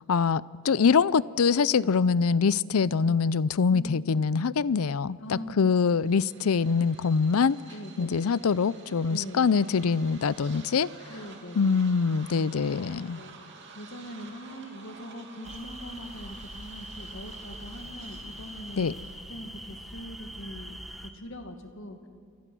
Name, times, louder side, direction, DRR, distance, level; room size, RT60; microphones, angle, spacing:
voice 1, 0.1-7.6 8.0-10.9 11.6-13.2 18.8-18.9, left 5 dB, 85° left, 20 dB, 0.5 m, -24 dB
voice 2, 3.7-4.1 5.2-5.7 7.7-8.3 9.1-9.5 11.1-11.7 12.9-13.3 13.7-19.0 19.3-22.1, equal, 60° left, 6 dB, 2.1 m, -42 dB
sound 1, 5.9-19.4, right 4 dB, 55° right, 2.8 m, -50 dB
sound 2, 15.4-21.1, equal, ahead, 1.3 m, -43 dB
28.0 x 24.0 x 6.2 m, 2.2 s
head